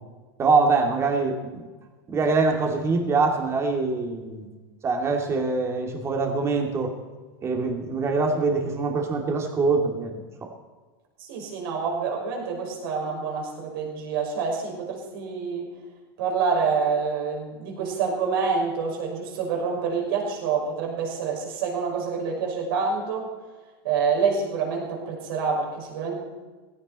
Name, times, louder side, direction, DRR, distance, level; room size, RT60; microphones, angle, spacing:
voice 1, 0.4-1.6 2.1-4.5 4.8-6.9 7.4-10.5, right 4 dB, 20° right, 2 dB, 2.6 m, -24 dB
voice 2, 11.2-15.7 16.2-23.3 23.8-26.2, right 5 dB, 70° right, 0 dB, 5.9 m, -27 dB
17.0 x 16.5 x 4.3 m, 1.3 s
supercardioid pair, 145°, 12 cm